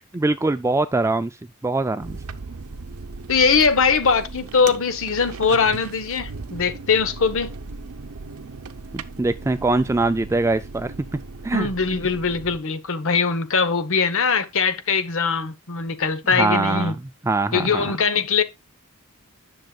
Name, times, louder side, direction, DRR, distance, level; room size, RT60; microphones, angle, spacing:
voice 1, 0.1-1.3 1.6-2.2 8.9-10.9 11.4-11.7 16.3-17.0 17.2-17.9, right 2 dB, 15° right, 0.3 m, -22 dB
sound 1, 2.0-12.6, right 3 dB, 75° right, 0.7 m, -37 dB
voice 2, 3.3-7.5 11.5-16.9 17.5-18.4, left 5 dB, 65° left, 1.0 m, -21 dB
10.5 x 6.5 x 2.3 m
head